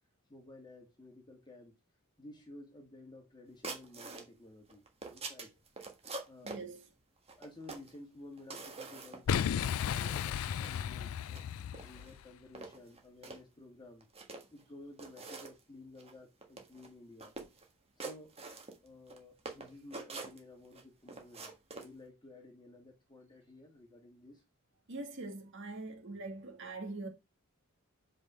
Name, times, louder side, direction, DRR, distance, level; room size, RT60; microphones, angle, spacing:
voice 1, 0.3-1.8 2.2-5.5 6.3-6.6 7.4-11.4 11.8-14.1 14.5-17.3 18.0-18.4 18.8-24.4, left 2 dB, 20° left, 1.7 m, -53 dB
sound 1, 3.6-4.3 4.7-6.6 7.3-8.0 8.4-9.3 9.6-9.7 10.1-10.8 11.2-11.4 11.7-12.1 12.5-13.4 14.0-14.6 15.0-15.6 16.0-16.1 16.4-16.9 17.2-17.6 18.0-19.2 19.5-20.8 21.1-21.9, right 3 dB, 30° right, 1.5 m, -45 dB
voice 2, 6.4-6.9 24.9-27.1, right 2 dB, 60° right, 2.2 m, -43 dB
Boom, 9.3-12.2, left 8 dB, 75° left, 0.3 m, -34 dB
5.4 x 5.1 x 6.0 m
head